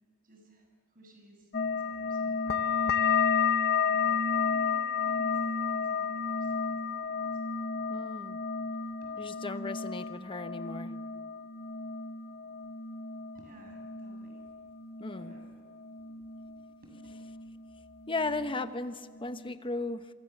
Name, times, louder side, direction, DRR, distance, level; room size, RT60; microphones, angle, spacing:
voice 1, 0.2-2.9 3.8-7.3 9.0-9.2 13.3-14.4 15.1-15.6 15.9-16.9, right 1 dB, 40° right, 2 dB, 7.1 m, -57 dB
sound 1, 1.5-16.7 17.0-17.8 18.1-18.8 19.2-19.6, left 6 dB, 50° left, 1.0 m, -32 dB
voice 2, 7.9-8.4 9.2-10.9 15.0-15.4 18.1-20.1, left 3 dB, 25° left, 10 dB, 1.0 m, -36 dB
27.0 x 24.0 x 7.2 m, 1.5 s
head